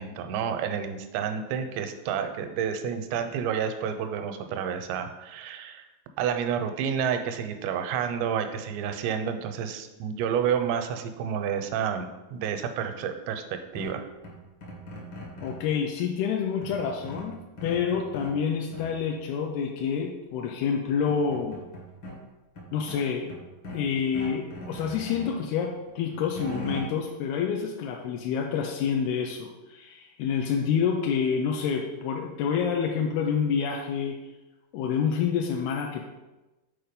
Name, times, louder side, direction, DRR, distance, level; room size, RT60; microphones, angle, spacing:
voice 1, 0.0-5.8 6.2-13.4 13.7-14.0, right 7 dB, 85° right, 7 dB, 2.9 m, -30 dB
sound 1, 13.8-15.7 16.6-18.4 18.7-19.1 20.4-20.5 20.9-22.2 22.5-23.9 24.1-25.4 25.8-26.8, equal, 60° left, 1.3 m, -40 dB
voice 2, 15.4-21.6 22.7-23.3 23.7-34.2 34.7-36.0, left 7 dB, 85° left, 1 dB, 2.3 m, -28 dB
7.2 x 4.5 x 5.2 m, 1.1 s
omnidirectional pair, 5.0 m